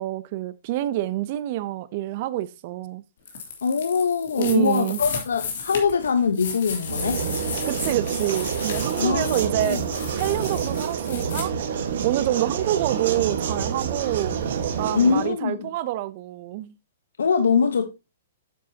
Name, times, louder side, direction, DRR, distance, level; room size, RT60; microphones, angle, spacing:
voice 1, 0.0-3.0 4.4-5.0 7.7-9.8 10.1-11.5 12.0-14.4 14.8-16.7, right 14 dB, 45° right, 0.6 m, -27 dB
sound 1, 3.2-11.4, left 6 dB, 65° left, 2.9 m, -34 dB
voice 2, 3.6-7.2 9.0-9.8 14.9-15.7 17.2-17.9, left 6 dB, 85° left, 0.9 m, -23 dB
sound 2, 6.8-15.3, right 7 dB, 65° right, 1.4 m, -28 dB
9.2 x 7.5 x 2.8 m
hypercardioid pair, 135°, 0 cm